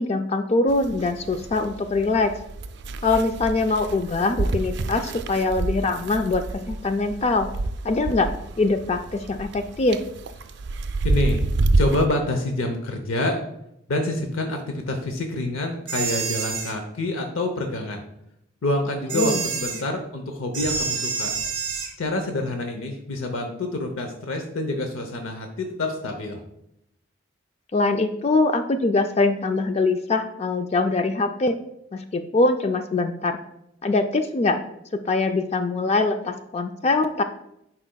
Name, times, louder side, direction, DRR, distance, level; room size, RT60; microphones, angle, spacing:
voice 1, 0.0-2.3 3.0-7.5 7.8-8.3 8.6-10.0 19.1-19.4 27.7-31.6 31.9-33.4 33.8-34.6 35.1-37.2, left 3 dB, 30° left, 8 dB, 0.3 m, -23 dB
sound 1, 0.7-12.1, right 2 dB, 55° right, 0.4 m, -28 dB
voice 2, 11.0-11.4 11.8-13.4 13.9-18.0 18.6-21.3 22.0-26.4, left 2 dB, 85° left, 4 dB, 0.7 m, -27 dB
sound 2, 15.9-16.7 19.1-19.8 20.5-21.9, right 5 dB, 40° right, 1.2 m, -28 dB
10.0 x 4.4 x 2.2 m, 0.79 s
head